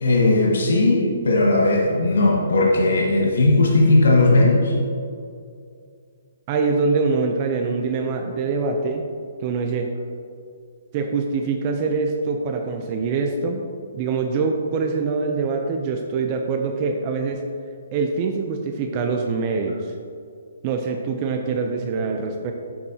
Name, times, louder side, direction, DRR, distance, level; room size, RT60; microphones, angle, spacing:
voice 1, 0.0-4.7, left 2 dB, 80° left, -2 dB, 1.4 m, -17 dB
voice 2, 6.5-9.0 9.4-9.9 10.9-13.7 13.9-17.4 17.9-19.9 20.6-22.5, right 4 dB, 30° right, 4 dB, 0.5 m, -24 dB
8.5 x 8.5 x 2.8 m, 2.4 s
hypercardioid pair, 165°, 0 cm